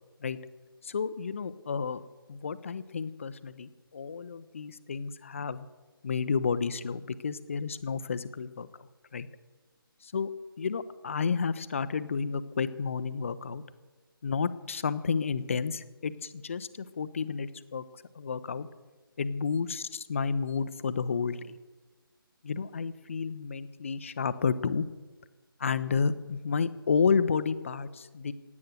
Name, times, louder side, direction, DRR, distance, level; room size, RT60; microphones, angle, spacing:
voice 1, 0.8-2.0 2.3-5.7 6.0-8.9 9.1-9.3 10.0-10.3 10.6-13.6 14.2-17.8 18.1-18.7 19.2-21.6 22.4-24.8 25.6-28.3, left 5 dB, 35° left, 14 dB, 0.7 m, -31 dB
17.0 x 9.6 x 7.8 m, 1.3 s
figure-of-eight pair, 150°, 12 cm